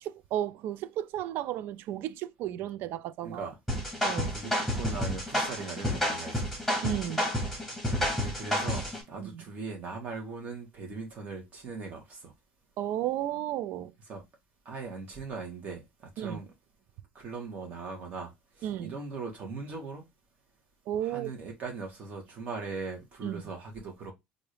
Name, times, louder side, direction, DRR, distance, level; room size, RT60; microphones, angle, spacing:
voice 1, 0.0-3.5 4.0-4.3 6.8-7.3 9.2-9.4 12.8-13.9 16.2-16.4 18.6-19.0 20.9-21.3 23.2-23.4, right 12 dB, 55° right, 0.4 m, -33 dB
voice 2, 3.2-3.6 4.3-6.5 8.1-12.3 14.1-14.2 14.6-16.5 17.1-20.0 21.0-24.1, right 4 dB, 35° right, 1.6 m, -40 dB
sound 1, 3.7-9.0, equal, ahead, 1.5 m, -30 dB
3.8 x 2.7 x 3.3 m
cardioid pair, 150°, 4 cm